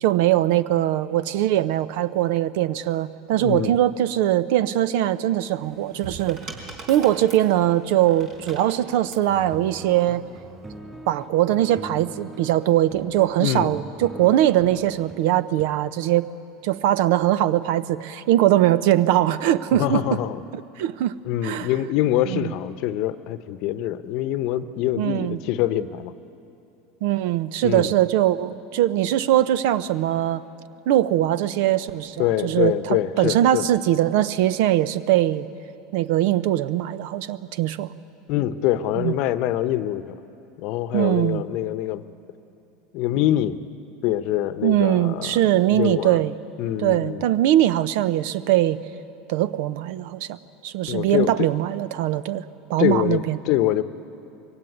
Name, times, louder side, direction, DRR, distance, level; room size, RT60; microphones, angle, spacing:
voice 1, 0.0-6.4 6.9-10.2 11.1-16.3 16.6-20.0 20.8-21.2 21.4-21.7 22.3-22.5 25.0-25.4 27.0-30.4 30.9-35.5 35.9-37.9 39.0-39.1 40.9-41.4 44.6-46.3 46.8-48.8 49.3-52.4 52.7-53.4, right 13 dB, 70° right, 16 dB, 0.7 m, -21 dB
voice 2, 3.4-3.7 13.4-13.8 19.7-20.4 21.2-26.1 27.6-27.9 32.2-33.7 38.3-40.2 40.6-42.0 42.9-43.6 44.0-45.4 45.7-46.2 46.6-47.3 50.9-51.5 52.8-53.8, left 13 dB, 60° left, 13 dB, 0.8 m, -24 dB
sound 1, 5.6-9.3 10.3-10.7, right 3 dB, 50° right, 4.5 m, -41 dB
sound 2, 9.3-15.7, right 1 dB, 15° right, 6.4 m, -42 dB
22.5 x 16.5 x 9.6 m, 2.8 s
hypercardioid pair, 95°, 0 cm